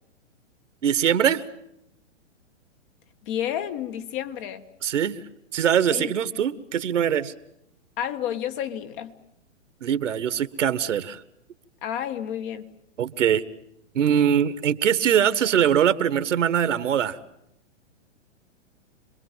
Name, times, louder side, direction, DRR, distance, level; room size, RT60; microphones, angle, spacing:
voice 1, 0.8-1.4 4.8-5.2 5.5-7.3 9.8-11.2 13.0-13.4 13.9-17.2, right 9 dB, 70° right, 13 dB, 1.5 m, -22 dB
voice 2, 3.2-4.6 5.9-6.1 8.0-9.2 11.8-12.7, left 10 dB, 40° left, 8 dB, 1.7 m, -30 dB
27.0 x 22.0 x 7.5 m, 0.83 s
hypercardioid pair, 125°, 38 cm